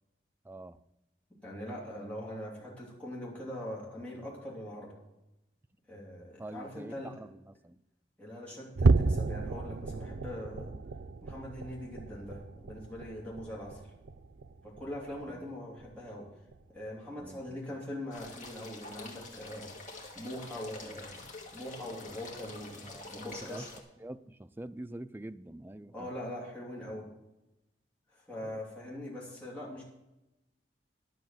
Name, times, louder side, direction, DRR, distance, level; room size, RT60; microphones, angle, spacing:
voice 1, 0.4-0.8 6.4-7.8 13.5-13.6 15.2-15.6 17.1-17.8 22.8-23.7 24.0-26.2 28.4-28.6, right 1 dB, 10° right, 10 dB, 0.3 m, -46 dB
voice 2, 1.4-4.9 5.9-7.1 8.2-10.7 11.2-13.8 14.6-16.3 16.7-19.7 20.1-21.2 21.5-23.7 25.9-27.1 28.1-29.8, left 1 dB, 10° left, -6 dB, 2.9 m, -42 dB
sound 1, 8.8-15.4 15.8-16.1 16.5-16.6 17.2-17.3, right 3 dB, 90° right, 0.5 m, -32 dB
sound 2, 18.1-23.8, left 2 dB, 45° left, 1.7 m, -47 dB
11.0 x 6.4 x 7.5 m, 0.93 s
head